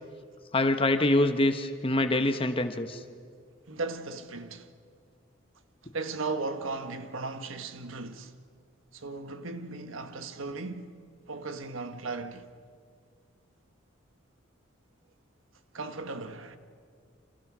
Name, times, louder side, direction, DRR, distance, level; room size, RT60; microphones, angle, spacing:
voice 1, 0.5-3.0, left 1 dB, 25° left, 1.1 m, -25 dB
voice 2, 3.7-4.7 5.9-8.3 8.9-10.9 11.3-12.5 15.7-16.6, right 3 dB, 80° right, 1.3 m, -36 dB
28.5 x 27.5 x 6.2 m
head